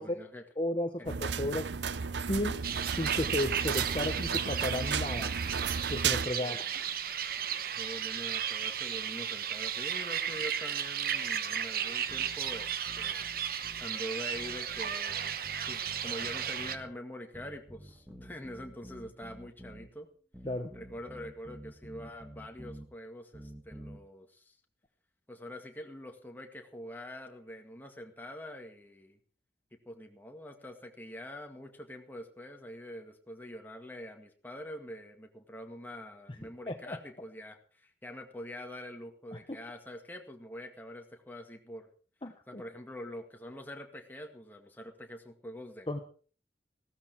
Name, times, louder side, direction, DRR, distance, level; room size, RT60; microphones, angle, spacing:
voice 1, 0.0-0.5 1.0-1.2 6.4-6.6 7.8-13.2 13.8-15.4 15.7-20.1 20.7-24.6 25.3-29.2 29.7-41.9 42.5-46.0, equal, 10° left, 3 dB, 1.9 m, -45 dB
voice 2, 0.6-1.7 2.3-2.6 2.9-5.3 5.9-6.6 20.4-20.7 36.7-37.0 39.3-39.6 42.2-42.6 45.9-46.0, left 1 dB, 30° left, 5 dB, 1.0 m, -33 dB
sound 1, 1.1-6.3, right 6 dB, 80° right, 0.6 m, -33 dB
sound 2, 2.6-16.8, right 8 dB, 55° right, 1.0 m, -34 dB
sound 3, 12.1-13.9 14.3-16.9 17.3-19.9 20.3-22.9 23.3-24.0, right 1 dB, 5° right, 1.8 m, -50 dB
16.0 x 13.5 x 4.6 m, 0.42 s
head